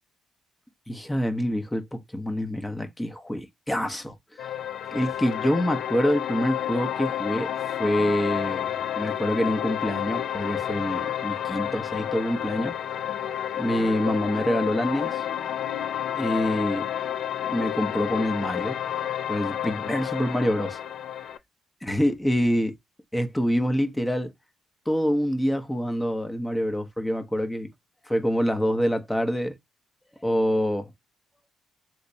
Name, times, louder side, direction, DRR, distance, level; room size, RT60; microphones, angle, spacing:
voice 1, 0.9-4.6 4.9-7.5 7.8-12.7 13.6-15.2 16.1-16.9 17.5-18.8 19.3-20.8 21.8-22.7 23.1-24.3 24.9-27.7 28.1-29.6 30.2-30.9, equal, 10° left, 0.8 m, -26 dB
sound 1, 4.4-21.4, left 10 dB, 70° left, 0.4 m, -30 dB
sound 2, 7.3-18.8, left 10 dB, 85° left, 0.8 m, -48 dB
3.3 x 3.0 x 2.6 m
cardioid pair, 90°, 0 cm